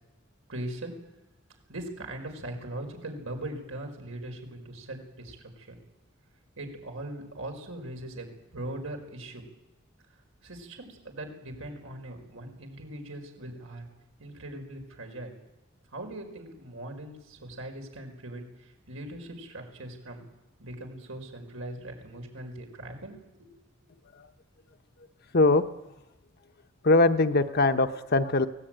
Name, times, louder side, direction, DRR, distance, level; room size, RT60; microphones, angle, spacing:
voice 1, 0.5-0.9 1.7-5.8 6.6-9.4 10.4-13.9 14.2-15.3 15.9-20.3 20.6-23.5, right 1 dB, 85° right, 3 dB, 5.2 m, -40 dB
voice 2, 25.3-25.6 26.8-28.5, left 2 dB, 50° left, 8 dB, 1.0 m, -22 dB
23.5 x 18.5 x 9.1 m, 1.0 s
head